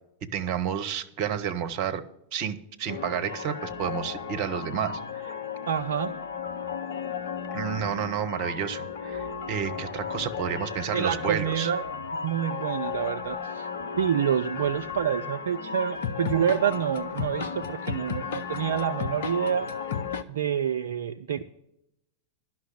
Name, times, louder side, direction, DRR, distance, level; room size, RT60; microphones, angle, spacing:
voice 1, 0.3-2.0 2.3-5.4 7.5-11.7, right 8 dB, 45° right, 10 dB, 0.9 m, -30 dB
sound 1, 2.9-20.2, left 6 dB, 60° left, 0.7 m, -34 dB
voice 2, 5.7-6.2 10.9-11.9 12.1-13.7 14.0-19.7 20.3-21.4, right 9 dB, 60° right, 9 dB, 0.4 m, -27 dB
11.0 x 5.9 x 9.0 m, 0.82 s
figure-of-eight pair, 90°, 0 cm